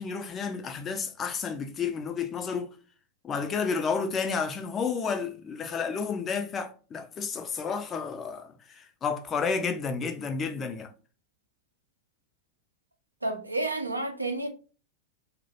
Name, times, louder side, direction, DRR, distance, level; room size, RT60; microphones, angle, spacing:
voice 1, 0.0-2.7 3.2-10.9, left 5 dB, 25° left, 0.4 m, -31 dB
voice 2, 13.2-14.5, right 2 dB, 85° right, 0.4 m, -30 dB
2.1 x 2.1 x 2.9 m
figure-of-eight pair, 90°, 0 cm